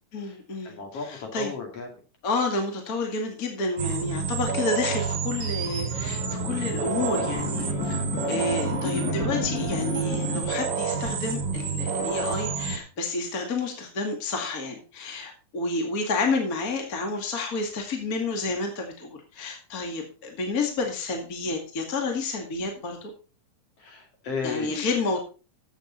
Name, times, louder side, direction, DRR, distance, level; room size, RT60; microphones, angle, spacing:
voice 1, 0.1-1.5 2.2-23.1 24.4-25.2, left 3 dB, 30° left, 2 dB, 2.4 m, -30 dB
voice 2, 0.6-1.9 7.9-8.2 23.8-24.7, left 5 dB, 50° left, 2 dB, 3.3 m, -34 dB
sound 1, 3.8-12.8, right 5 dB, 45° right, 1.7 m, -29 dB
sound 2, 5.7-10.4, left 10 dB, 85° left, 2.5 m, -34 dB
15.0 x 7.7 x 4.0 m, 0.35 s
omnidirectional pair, 3.6 m